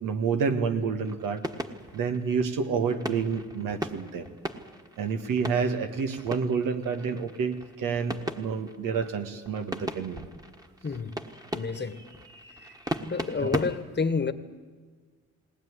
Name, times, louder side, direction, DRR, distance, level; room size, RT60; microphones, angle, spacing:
voice 1, 0.0-1.4 1.9-4.3 5.0-10.3 13.4-13.5, right 5 dB, 85° right, 1.7 m, -29 dB
sound 1, 1.0-13.8, right 1 dB, 10° right, 1.5 m, -38 dB
voice 2, 10.8-11.1 11.5-12.0 13.0-14.3, left 4 dB, 35° left, 1.4 m, -29 dB
19.5 x 19.0 x 9.6 m
cardioid pair, 70°, 31 cm